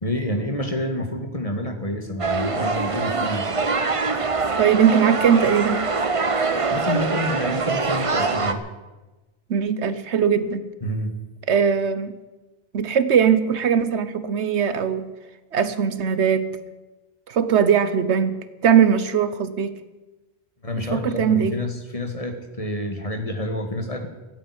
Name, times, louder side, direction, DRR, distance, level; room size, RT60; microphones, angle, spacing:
voice 1, 0.0-3.5 6.7-8.6 10.8-11.1 20.6-24.1, left 1 dB, 30° left, 5 dB, 1.8 m, -28 dB
sound 1, 2.2-8.5, right 4 dB, 30° right, 0.9 m, -24 dB
voice 2, 4.6-5.8 9.5-10.7 11.5-12.1 12.7-15.1 15.5-16.5 17.3-19.7 20.7-21.6, right 7 dB, 75° right, 13 dB, 1.2 m, -20 dB
14.5 x 8.6 x 9.9 m, 1.1 s
omnidirectional pair, 1.2 m